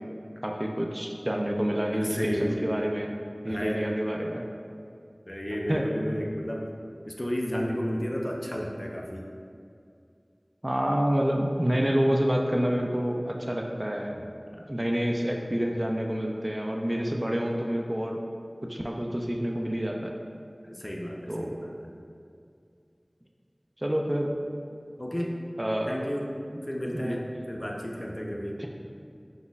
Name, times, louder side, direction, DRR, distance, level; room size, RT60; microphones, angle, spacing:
voice 1, 0.4-3.1 3.4-4.5 5.7-5.8 10.6-14.2 14.7-18.2 18.6-20.1 21.3-21.6 23.8-24.3 25.6-25.9 26.9-27.2 28.6-28.7, equal, 30° right, 1 dB, 0.4 m, -28 dB
voice 2, 1.9-2.6 3.5-3.9 5.3-6.7 7.0-9.3 14.2-14.7 20.6-21.8 25.0-25.4 25.9-26.3 26.6-28.6, equal, 35° left, -1 dB, 0.5 m, -32 dB
5.1 x 3.9 x 2.4 m, 2.4 s
wide cardioid pair, 40°, 0 cm